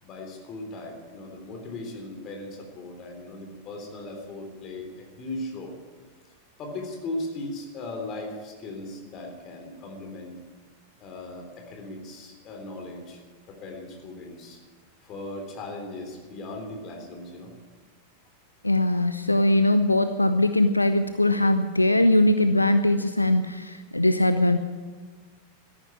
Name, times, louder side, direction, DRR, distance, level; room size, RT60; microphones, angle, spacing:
voice 1, 0.0-5.8 6.6-10.4 11.0-13.2 13.5-14.6 15.0-17.5, left 2 dB, 35° left, 3 dB, 3.7 m, -38 dB
voice 2, 18.6-24.6, left 1 dB, 85° left, 10 dB, 0.6 m, -21 dB
13.5 x 11.5 x 8.5 m, 1.5 s
figure-of-eight pair, 90°, 0 cm